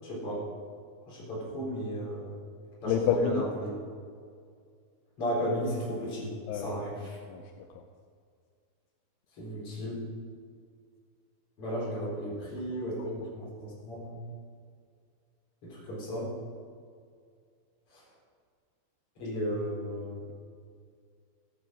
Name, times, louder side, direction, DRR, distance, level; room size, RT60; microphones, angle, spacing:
voice 1, 0.0-0.5 1.1-2.4 2.8-3.7 5.2-7.2 9.3-10.0 11.6-14.2 15.6-16.3 17.9-18.0 19.2-20.2, equal, 30° left, -5 dB, 4.7 m, -34 dB
voice 2, 2.9-3.5 6.5-6.8 7.3-7.8, left 7 dB, 85° left, 5 dB, 2.9 m, -29 dB
15.0 x 10.5 x 5.3 m, 2.1 s
omnidirectional pair, 5.8 m